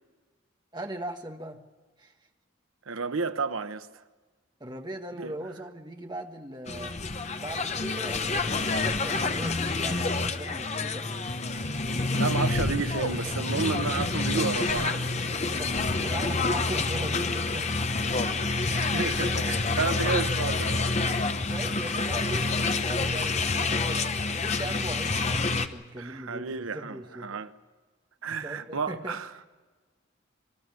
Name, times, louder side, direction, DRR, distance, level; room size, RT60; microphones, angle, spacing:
voice 1, 0.7-1.6 2.0-2.1 4.6-6.9 7.4-11.1 13.2-13.5 15.3-18.0 21.0-27.4 28.3-29.2, right 1 dB, 20° right, 1.5 m, -40 dB
voice 2, 2.9-3.9 5.2-5.3 12.1-15.1 18.7-20.9 26.0-27.0 27.2-27.5 28.2-29.3, right 4 dB, 85° right, 1.0 m, -31 dB
sound 1, 6.7-25.7, left 3 dB, 35° left, 0.9 m, -28 dB
26.0 x 13.0 x 9.7 m
head